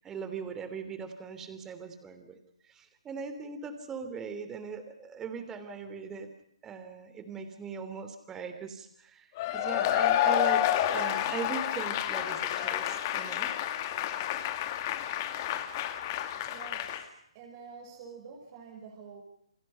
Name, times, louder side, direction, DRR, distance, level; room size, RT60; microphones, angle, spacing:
voice 1, 0.0-2.4 2.6-6.3 6.6-13.5, right 5 dB, 15° right, 9 dB, 3.1 m, -40 dB
Cheering / Applause / Crowd, 9.4-17.0, left 11 dB, 35° left, 2.2 m, -29 dB
voice 2, 16.4-17.1 17.3-19.2, right 5 dB, 35° right, 0 dB, 5.4 m, -47 dB
29.0 x 25.5 x 5.6 m, 0.71 s
hypercardioid pair, 145°, 3 cm